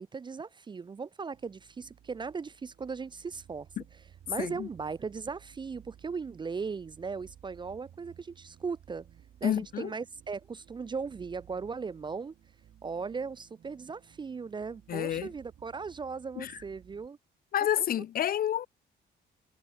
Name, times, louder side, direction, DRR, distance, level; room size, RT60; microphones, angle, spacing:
voice 1, 0.0-3.7 4.3-9.1 9.4-12.3 12.8-17.2, right 5 dB, 25° right, 0.4 m, -38 dB
sound 1, 1.3-17.1, right 10 dB, 65° right, 3.8 m, -57 dB
voice 2, 4.4-4.7 9.4-9.9 14.9-15.3 16.4-16.6 17.5-18.7, left 10 dB, 50° left, 0.4 m, -29 dB
cardioid pair, 90°, 20 cm